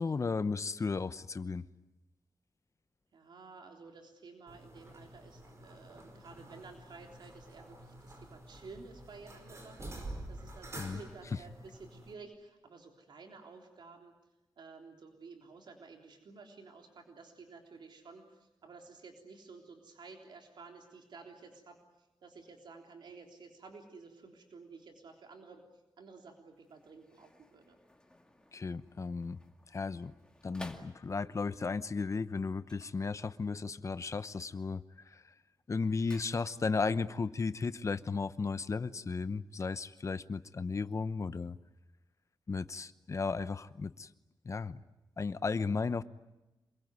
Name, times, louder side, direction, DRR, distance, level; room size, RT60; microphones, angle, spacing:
voice 1, 0.0-1.7 10.8-11.0 28.5-29.4 29.7-30.2 30.4-34.8 35.1-35.2 35.7-41.6 42.5-44.1 44.4-44.8 45.2-46.0, left 4 dB, 40° left, 14 dB, 0.9 m, -34 dB
voice 2, 3.1-14.1 14.6-21.8 22.2-25.6 26.0-27.8, right 4 dB, 90° right, 3 dB, 3.6 m, -53 dB
sound 1, 4.5-12.1, right 1 dB, 40° right, 4.9 m, -48 dB
sound 2, 26.5-31.5 32.6-33.7 34.0-34.5 34.8-36.9 37.2-37.3, left 1 dB, 10° left, 2.3 m, -56 dB
27.0 x 22.0 x 9.5 m, 1.0 s
wide cardioid pair, 145°, 8 cm